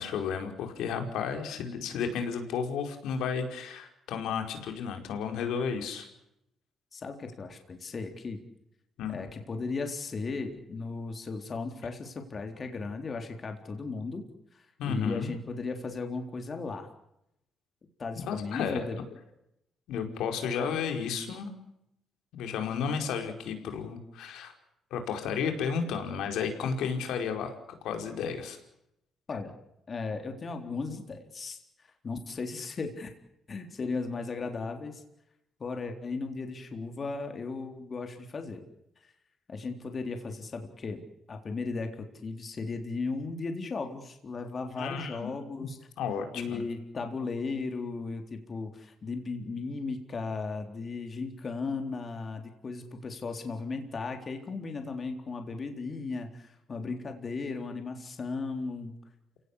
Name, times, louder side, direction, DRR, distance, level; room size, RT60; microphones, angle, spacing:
voice 1, 0.0-6.1 9.0-9.1 14.8-15.3 18.2-18.9 19.9-21.5 22.3-24.5 24.9-27.5 27.8-28.6 44.8-45.2 45.6-45.7 46.0-46.6, left 6 dB, 85° left, 5 dB, 5.0 m, -32 dB
voice 2, 6.9-8.4 9.1-14.2 14.5-16.9 18.0-19.0 29.3-29.5 29.9-33.1 33.5-35.0 35.6-38.6 39.5-41.0 41.3-45.8 46.3-58.9, left 4 dB, 40° left, 5 dB, 3.8 m, -36 dB
29.0 x 18.0 x 8.5 m, 0.82 s
cardioid pair, 90°, 0 cm